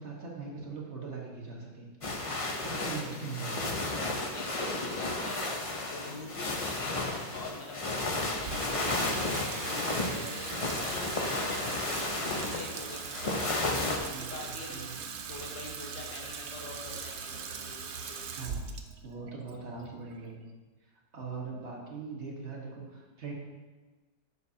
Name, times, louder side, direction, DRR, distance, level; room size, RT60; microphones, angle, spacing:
voice 1, 0.0-1.9 2.6-3.8 14.1-14.9 18.4-18.6 19.0-20.4 20.8-23.3, right 4 dB, 40° right, -2 dB, 1.5 m, -41 dB
sound 1, 2.0-14.0, left 2 dB, 50° left, 0.4 m, -33 dB
voice 2, 4.0-7.0 7.3-9.4 9.6-13.0 13.3-14.9 15.3-18.2, left 3 dB, 85° left, 0 dB, 2.0 m, -44 dB
Water tap faucet / Sink (filling or washing), 8.4-20.8, right 6 dB, 90° right, 0.5 m, -41 dB
12.0 x 6.6 x 2.8 m, 1.3 s
omnidirectional pair, 1.9 m